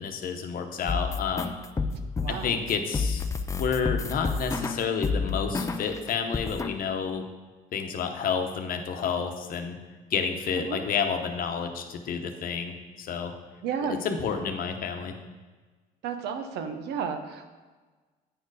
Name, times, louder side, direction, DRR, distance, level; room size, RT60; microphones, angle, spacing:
voice 1, 0.0-1.5 2.3-3.2 3.5-7.2 7.7-9.8 10.1-13.3 13.9-15.1, left 6 dB, 55° left, 5 dB, 0.9 m, -30 dB
sound 1, 0.9-6.0 6.3-6.8, left 4 dB, 20° left, 0.5 m, -30 dB
voice 2, 1.9-2.6 10.6-10.8 13.6-14.0 16.0-17.5, right 6 dB, 80° right, 7 dB, 0.9 m, -33 dB
9.1 x 4.5 x 4.9 m, 1.3 s
cardioid pair, 110°, 17 cm